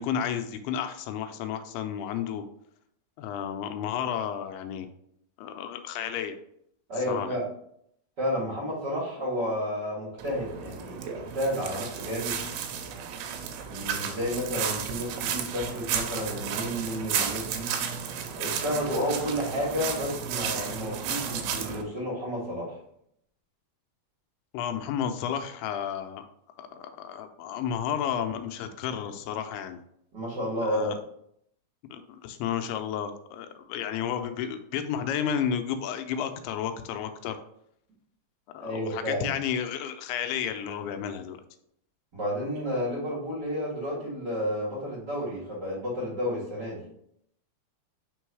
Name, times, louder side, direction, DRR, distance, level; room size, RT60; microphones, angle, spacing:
voice 1, 0.0-2.4 3.2-4.9 5.4-6.4 7.1-7.4 24.5-26.2 26.6-29.8 30.6-31.0 31.9-37.4 38.5-41.4, left 8 dB, 85° left, 8 dB, 2.5 m, -32 dB
voice 2, 6.9-7.4 8.2-12.4 13.6-17.7 18.4-22.7 30.1-31.0 38.6-39.3 42.1-46.8, equal, 40° right, -7 dB, 1.7 m, -31 dB
sound 1, 10.2-21.8, right 7 dB, 80° right, 2.5 m, -33 dB
5.3 x 3.8 x 4.7 m, 0.72 s
omnidirectional pair, 4.5 m